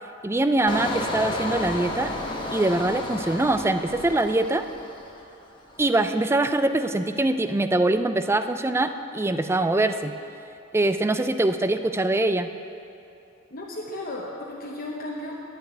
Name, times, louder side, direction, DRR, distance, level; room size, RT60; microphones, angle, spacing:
voice 1, 0.2-2.1 2.5-4.6 5.8-10.1 10.7-12.5, right 2 dB, 15° right, 9 dB, 0.4 m, -23 dB
Engine, 0.7-5.3 5.7-6.0, left 2 dB, 25° left, 1.1 m, -32 dB
voice 2, 13.5-15.3, left 1 dB, 50° left, -4 dB, 1.0 m, -34 dB
10.0 x 7.0 x 9.0 m, 2.7 s
head